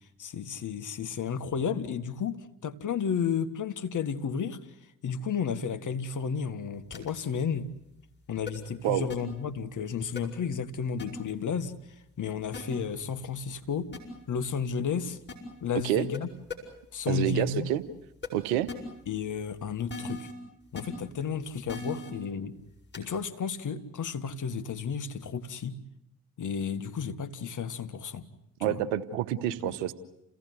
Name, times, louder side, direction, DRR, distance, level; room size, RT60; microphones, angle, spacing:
voice 1, 0.2-4.6 5.0-7.7 8.3-13.9 14.3-15.2 15.6-16.3 16.9-17.7 19.1-20.3 20.7-22.5 23.0-25.8 26.4-28.3 28.6-28.8 29.6-29.8, left 6 dB, 50° left, 9 dB, 1.8 m, -32 dB
sound 1, 6.9-7.1 8.5-8.6 9.1-9.2 10.2-10.3 11.0-11.1 12.5-12.6 13.9-14.0 15.3-15.4 16.1-16.2 16.5-16.6 18.2-18.3 18.7-18.8 19.9-20.3 20.8-20.9 21.7-22.1 22.9-23.1, left 3 dB, 25° left, 7.2 m, -37 dB
voice 2, 17.1-17.8 18.3-18.7 28.6-29.9, right 12 dB, 80° right, 14 dB, 1.1 m, -28 dB
29.5 x 17.0 x 9.6 m, 0.82 s
hypercardioid pair, 50°, 40 cm